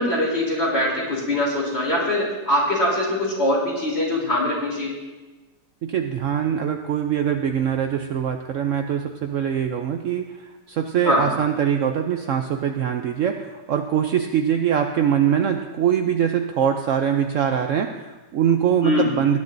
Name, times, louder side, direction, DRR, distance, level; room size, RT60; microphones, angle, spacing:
voice 1, 0.0-4.9 11.0-11.3 18.8-19.1, left 1 dB, 35° left, -3 dB, 3.6 m, -22 dB
voice 2, 5.8-19.4, right 8 dB, 75° right, 5 dB, 0.7 m, -23 dB
19.0 x 11.0 x 2.6 m, 1.2 s
omnidirectional pair, 2.0 m